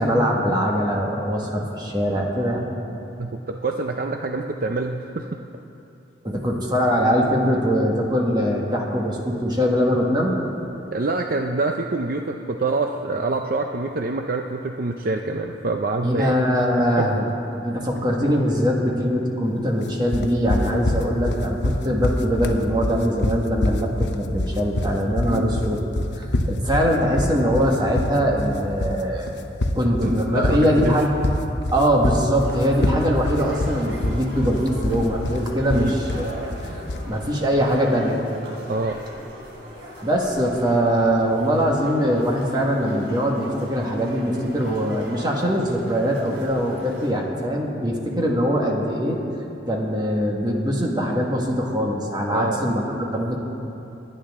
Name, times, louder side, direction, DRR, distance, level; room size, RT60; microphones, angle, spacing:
voice 1, 0.0-2.7 6.2-10.4 16.0-17.3 17.6-25.8 26.1-29.3 29.8-31.1 31.7-38.3 40.0-49.2 49.7-53.4, equal, 25° right, -1 dB, 1.6 m, -22 dB
voice 2, 3.2-5.2 10.9-16.3 16.8-17.4 25.3-25.5 30.0-31.0 35.7-36.0 38.7-39.0 52.3-52.6, right 3 dB, 55° right, 4 dB, 0.6 m, -26 dB
sound 1, 20.1-37.1, left 1 dB, 70° left, 0.9 m, -25 dB
sound 2, 32.4-47.1, equal, 90° right, 3.8 m, -40 dB
29.0 x 10.0 x 3.6 m, 2.9 s
head